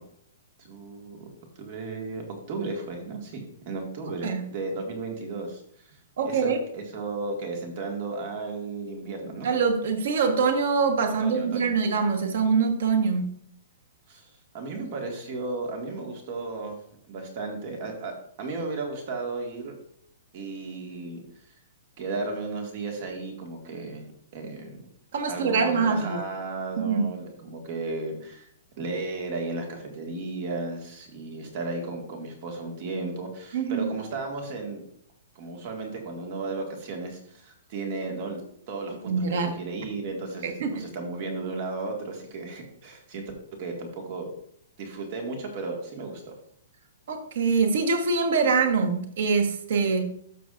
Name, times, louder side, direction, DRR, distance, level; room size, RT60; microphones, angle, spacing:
voice 1, 0.6-1.3 1.6-2.2 2.5-5.6 5.9-6.0 6.3-9.5 11.2-11.7 14.1-14.3 14.5-19.7 20.3-21.2 22.0-24.0 24.3-24.8 25.3-28.5 28.8-34.8 35.4-38.4 38.7-43.3 43.6-44.3 44.8-46.3, right 3 dB, 40° right, 2 dB, 2.0 m, -34 dB
voice 2, 6.2-6.6 9.4-13.3 25.1-26.2 26.8-27.1 33.5-33.9 39.1-39.6 40.4-40.7 47.1-50.0, right 5 dB, 60° right, 5 dB, 1.5 m, -24 dB
13.0 x 5.9 x 2.6 m, 0.67 s
hypercardioid pair, 165°, 0 cm